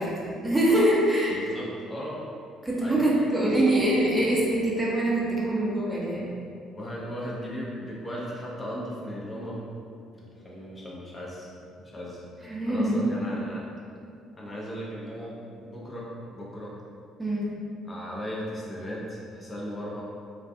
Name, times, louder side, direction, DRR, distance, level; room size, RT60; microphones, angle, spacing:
voice 1, 0.0-1.6 2.6-6.4 12.4-12.9 17.2-17.5, right 1 dB, 15° right, -5 dB, 0.6 m, -24 dB
voice 2, 1.3-2.2 2.8-3.7 6.7-9.7 10.1-11.5 11.8-13.7 14.4-16.8 17.8-20.0, equal, 25° left, -5 dB, 0.5 m, -37 dB
2.3 x 2.3 x 2.6 m, 2.4 s
hypercardioid pair, 55°, 0 cm